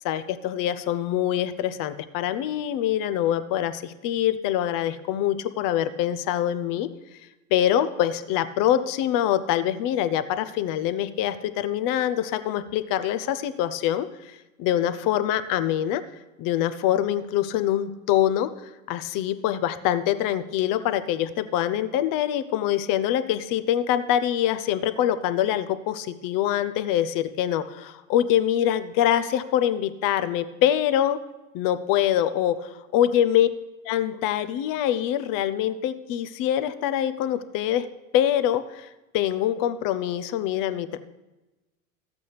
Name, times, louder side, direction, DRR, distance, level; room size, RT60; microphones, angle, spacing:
voice 1, 0.0-6.9 7.5-16.0 16.4-18.5 18.9-31.2 31.5-33.5 33.8-37.9 38.1-38.9 39.1-41.0, left 11 dB, 50° left, 12 dB, 0.8 m, -24 dB
13.0 x 8.4 x 3.4 m, 1.1 s
hypercardioid pair, 85°, 41 cm